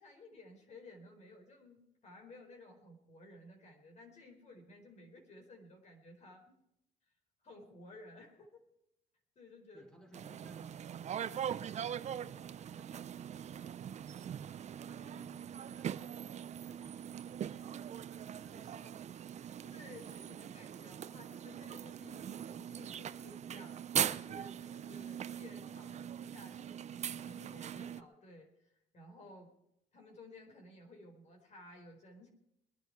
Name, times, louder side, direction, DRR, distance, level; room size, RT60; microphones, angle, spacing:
voice 1, 0.0-6.6 7.4-8.6 9.3-9.9 19.6-29.5 29.9-32.3, left 1 dB, 45° left, 2 dB, 4.6 m, -55 dB
voice 2, 9.7-13.1 13.4-16.1 16.5-17.3 17.7-19.1, right 1 dB, 5° left, 3 dB, 4.1 m, -61 dB
sound 1, 10.1-28.0, right 9 dB, 45° right, 0.6 m, -41 dB
22.5 x 10.5 x 4.7 m, 0.80 s
cardioid pair, 110°, 17 cm